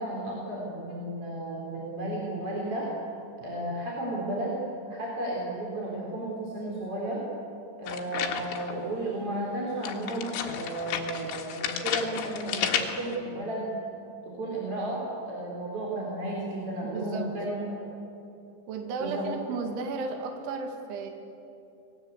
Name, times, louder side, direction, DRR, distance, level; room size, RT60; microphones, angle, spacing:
voice 1, 0.0-2.9 3.4-4.6 4.9-7.2 7.8-13.7 14.3-17.6 19.0-19.3, right 1 dB, 30° right, -4 dB, 4.5 m, -33 dB
sound 1, 7.9-8.8 9.8-13.2, left 8 dB, 80° left, 4.2 m, -32 dB
voice 2, 16.9-17.3 18.7-21.1, right 4 dB, 75° right, 4 dB, 4.4 m, -34 dB
28.5 x 20.5 x 8.3 m, 2.8 s
omnidirectional pair, 5.6 m